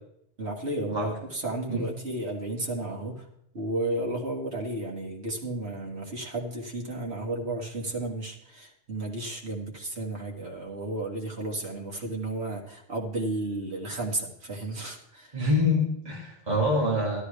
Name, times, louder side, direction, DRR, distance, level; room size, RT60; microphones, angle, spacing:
voice 1, 0.4-3.3 3.5-15.4, right 2 dB, 90° right, -1 dB, 2.2 m, -33 dB
voice 2, 15.3-17.2, left 1 dB, 40° right, -4 dB, 2.5 m, -25 dB
12.5 x 12.5 x 3.4 m, 0.73 s
omnidirectional pair, 1.1 m